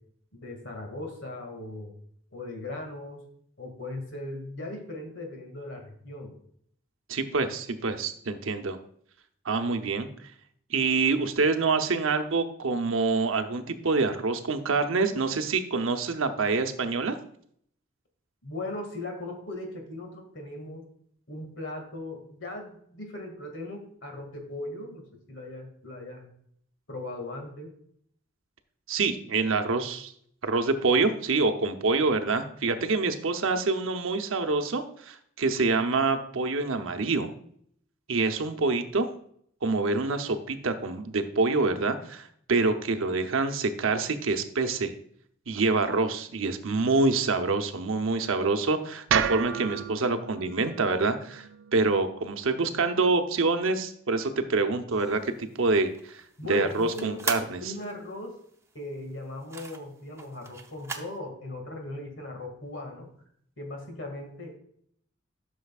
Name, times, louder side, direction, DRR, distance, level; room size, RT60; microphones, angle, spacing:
voice 1, 0.3-1.9 2.3-3.2 3.6-6.4 18.4-20.9 21.3-26.3 26.9-27.7 56.4-58.4 58.7-63.1 63.6-64.6, left 1 dB, 65° left, 3 dB, 2.1 m, -38 dB
voice 2, 7.1-8.8 9.4-10.1 10.7-17.2 28.9-30.1 30.4-37.3 38.1-39.1 39.6-44.9 45.5-51.5 51.7-56.2 56.5-57.7, right 3 dB, 90° right, 7 dB, 0.8 m, -26 dB
sound 1, 49.1-53.3, right 8 dB, 70° right, 0.4 m, -33 dB
sound 2, 54.9-61.2, right 4 dB, 15° right, 0.7 m, -40 dB
11.5 x 6.4 x 2.4 m, 0.66 s
head